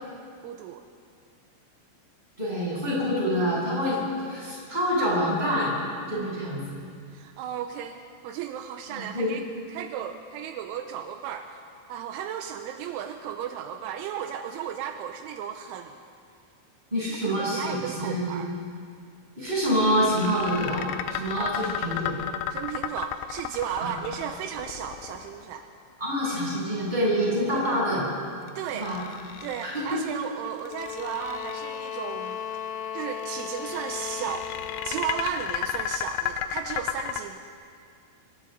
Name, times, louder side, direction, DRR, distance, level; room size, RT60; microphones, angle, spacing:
voice 1, 0.4-0.8 6.1-6.4 7.1-9.4 9.7-11.6 11.9-15.9 17.1-18.5 21.4-21.7 22.5-25.7 28.6-28.9 29.4-32.4 32.9-34.5 34.8-37.4, right 9 dB, 85° right, 5 dB, 3.1 m, -35 dB
voice 2, 2.4-5.8 6.1-6.8 9.0-9.4 16.9-18.5 19.4-22.2 23.8-23.9 26.0-28.1 28.7-29.0 29.6-30.0, equal, 10° right, -7 dB, 7.5 m, -26 dB
sound 1, 19.5-25.7 28.5-30.1 30.6-31.9 33.2-37.2, left 10 dB, 85° left, 3.2 m, -34 dB
sound 2, 30.6-35.4, left 8 dB, 70° left, 3.2 m, -36 dB
27.5 x 24.0 x 4.0 m, 2.3 s
omnidirectional pair, 5.6 m